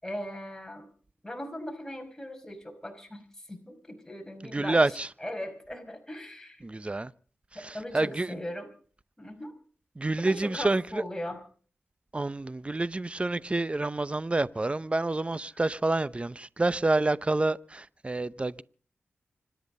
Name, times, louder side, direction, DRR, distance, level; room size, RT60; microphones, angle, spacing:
voice 1, 0.0-0.9 1.2-6.6 7.5-8.7 9.2-9.5 10.2-11.4, left 1 dB, 10° left, 5.5 m, -39 dB
voice 2, 4.5-5.1 6.6-7.1 7.6-8.4 10.0-11.0 12.1-18.6, right 2 dB, 30° right, 0.7 m, -28 dB
25.5 x 10.5 x 5.4 m
cardioid pair, 45°, 4 cm